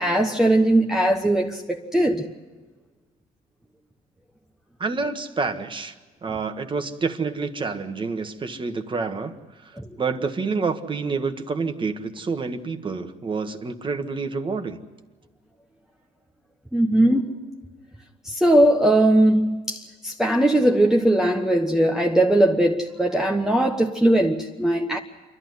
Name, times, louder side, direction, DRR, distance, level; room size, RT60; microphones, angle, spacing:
voice 1, 0.0-2.2 9.8-9.9 16.7-17.3 18.2-25.0, right 1 dB, 5° right, 1.2 m, -19 dB
voice 2, 4.8-5.9 6.2-9.3 9.6-9.7 10.0-14.8, right 4 dB, 30° right, 1.6 m, -28 dB
28.5 x 12.0 x 9.6 m
cardioid pair, 110°, 17 cm